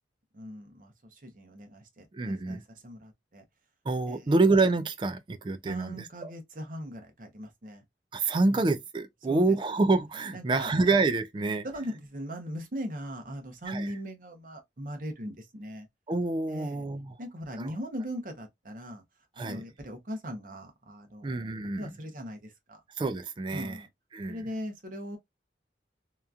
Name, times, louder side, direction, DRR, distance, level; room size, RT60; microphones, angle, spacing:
voice 1, 0.3-3.4 4.1-4.3 5.6-7.8 8.5-8.7 9.3-9.6 10.3-10.7 11.6-15.9 16.5-16.8 17.2-19.0 19.3-21.5 21.8-22.8 23.5-23.9 24.3-25.2, equal, 45° right, 0.7 m, -39 dB
voice 2, 2.1-2.6 3.9-6.3 8.1-11.7 13.7-13.9 16.1-17.1 17.6-17.7 19.4-19.6 21.2-21.9 23.0-23.8 24.1-24.4, right 3 dB, 25° right, 0.3 m, -27 dB
2.9 x 2.4 x 2.3 m
head